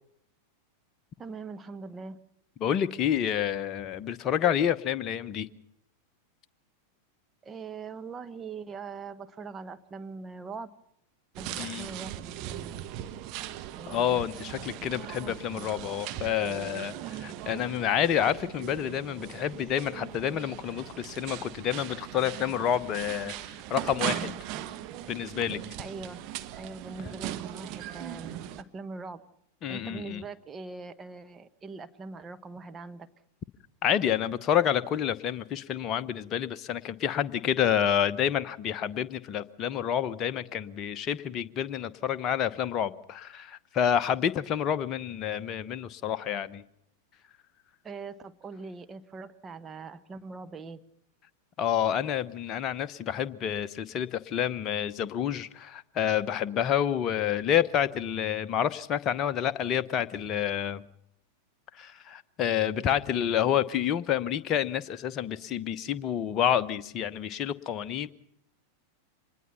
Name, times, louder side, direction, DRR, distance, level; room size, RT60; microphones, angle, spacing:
voice 1, 1.2-2.2 7.4-10.8 11.4-12.8 13.8-14.3 14.7-15.4 25.8-26.2 26.6-29.2 29.7-33.1 47.8-50.8, right 4 dB, 20° right, 10 dB, 1.2 m, -42 dB
voice 2, 2.6-5.5 11.6-11.9 13.9-24.3 25.1-25.6 29.6-30.2 33.8-46.6 51.6-60.8 61.8-68.1, left 9 dB, 30° left, 11 dB, 1.0 m, -29 dB
sound 1, 11.4-28.6, right 12 dB, 40° right, 1.2 m, -39 dB
25.5 x 20.5 x 5.7 m, 0.74 s
figure-of-eight pair, 90°, 0 cm